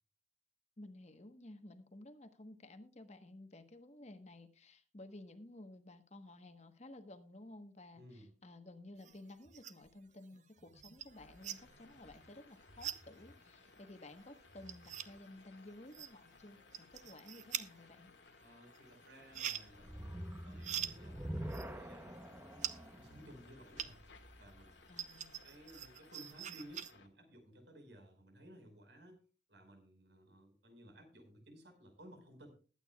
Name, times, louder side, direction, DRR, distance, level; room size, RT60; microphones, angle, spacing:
voice 1, 0.8-18.1 24.9-25.5, left 1 dB, 35° left, 8 dB, 1.2 m, -54 dB
voice 2, 7.9-8.3 18.4-24.0 24.4-25.0 25.4-29.2 29.5-32.5, equal, 75° right, 5 dB, 4.7 m, -58 dB
sound 1, 9.0-10.0 10.3-24.2 24.6-26.9, right 9 dB, 40° right, 0.8 m, -46 dB
sound 2, 11.1-27.1, left 4 dB, 90° left, 1.8 m, -63 dB
sound 3, 19.8-25.1, equal, 10° right, 0.8 m, -46 dB
21.0 x 9.1 x 2.3 m, 0.36 s
head